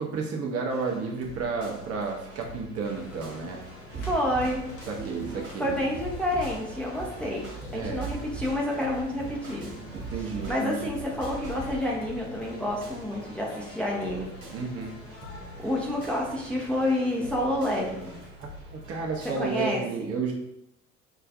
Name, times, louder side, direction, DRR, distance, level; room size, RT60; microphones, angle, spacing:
voice 1, 0.0-3.6 4.9-5.8 7.7-8.1 9.9-11.0 14.5-14.9 18.4-20.3, right 4 dB, 35° right, 0 dB, 0.7 m, -32 dB
sound 1, 0.7-19.6, equal, 85° right, 1.0 m, -47 dB
sound 2, 2.8-18.3, left 2 dB, 35° left, 0.9 m, -47 dB
sound 3, 3.9-11.9, right 4 dB, 60° right, 1.3 m, -39 dB
voice 2, 4.0-4.6 5.6-9.7 10.2-14.3 15.6-18.2 19.4-20.1, left 1 dB, 5° left, -3 dB, 0.7 m, -29 dB
4.8 x 2.4 x 2.4 m, 0.80 s
figure-of-eight pair, 60°, 40 cm